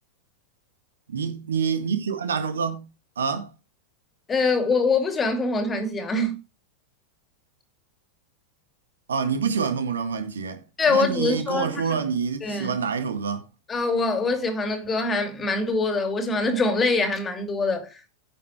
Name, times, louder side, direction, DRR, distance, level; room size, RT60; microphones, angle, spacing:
voice 1, 1.1-2.9 3.2-3.5 9.1-10.6 10.9-13.4, right 6 dB, 70° right, 1.9 m, -27 dB
voice 2, 4.3-6.4 10.8-12.0 12.4-12.7 13.7-18.1, left 3 dB, 20° left, 2.6 m, -24 dB
10.5 x 7.2 x 4.4 m
figure-of-eight pair, 90°, 0 cm